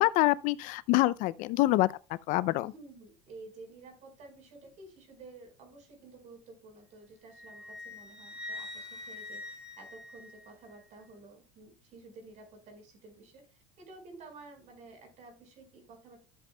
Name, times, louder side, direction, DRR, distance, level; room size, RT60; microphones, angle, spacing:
voice 1, 0.0-1.9 2.3-2.7, left 18 dB, 65° left, 0.4 m, -26 dB
voice 2, 2.6-16.2, right 3 dB, 55° right, 4.7 m, -52 dB
Wind instrument woodwind instrument, 7.3-10.8, left 2 dB, 5° right, 3.5 m, -44 dB
13.0 x 7.7 x 2.3 m
supercardioid pair, 105°, 15 cm